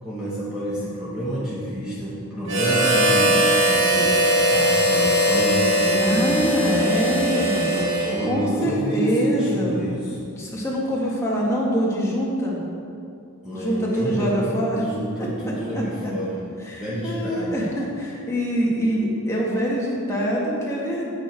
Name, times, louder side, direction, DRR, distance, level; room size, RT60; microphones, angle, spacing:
voice 1, 0.0-10.3 13.4-16.4 16.8-17.6, equal, 5° right, -9 dB, 1.2 m, -28 dB
Harmonica, 2.5-8.5, right 1 dB, 60° right, 1.8 m, -20 dB
voice 2, 6.0-7.7 8.2-9.7 10.3-12.6 13.5-14.8 15.4-15.8 16.7-21.1, equal, 15° left, -5 dB, 1.6 m, -25 dB
8.7 x 7.4 x 4.5 m, 2.4 s
head